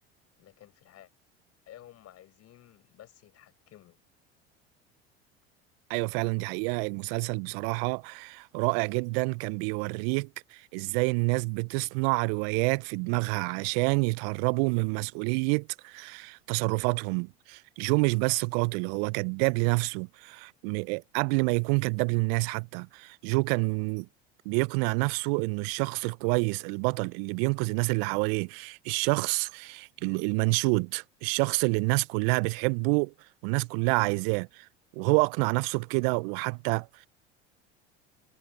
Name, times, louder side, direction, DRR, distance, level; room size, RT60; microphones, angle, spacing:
voice 1, 0.4-1.1 1.7-4.0, left 12 dB, 50° left, 7.4 m, -53 dB
voice 2, 5.9-24.1 24.5-33.1 33.4-34.7 35.0-37.1, right 32 dB, 60° right, 0.6 m, -28 dB
hypercardioid pair, 75°, 33 cm